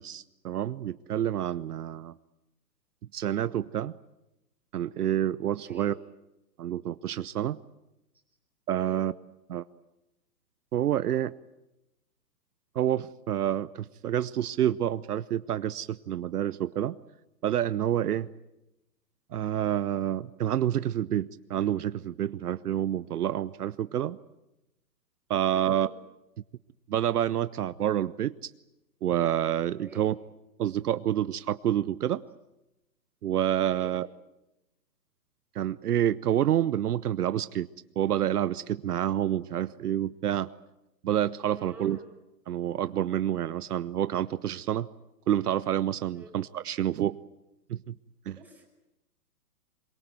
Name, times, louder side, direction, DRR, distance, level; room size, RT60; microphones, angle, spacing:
voice 1, 0.0-2.1 3.1-3.9 4.7-5.9 6.6-7.6 8.7-9.1 9.5-9.6 10.7-11.3 12.7-17.0 17.4-18.3 19.3-24.2 25.3-25.9 26.9-28.5 29.0-30.1 30.6-32.2 33.2-34.1 35.5-37.7 38.0-40.5 41.0-42.0 42.5-44.9 45.3-47.2 47.7-47.9 48.3-48.4, right 11 dB, 70° right, 16 dB, 0.8 m, -28 dB
voice 2, 25.5-25.9 29.8-30.0 33.7-33.9 41.5-42.1 46.1-46.3 48.4-48.7, right 2 dB, 5° right, 0 dB, 5.2 m, -47 dB
23.5 x 22.5 x 9.2 m, 0.92 s
hypercardioid pair, 145°, 48 cm